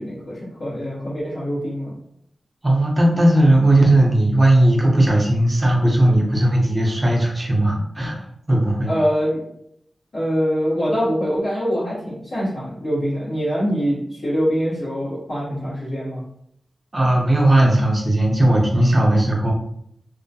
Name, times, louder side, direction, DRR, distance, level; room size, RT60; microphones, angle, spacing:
voice 1, 0.0-1.9 8.9-9.5 10.1-16.2, equal, 60° left, -12 dB, 0.9 m, -24 dB
voice 2, 2.6-8.2 8.5-8.9 16.9-19.5, right 1 dB, 25° right, -2 dB, 0.6 m, -17 dB
2.2 x 2.1 x 2.6 m, 0.73 s
wide cardioid pair, 140°, 0 cm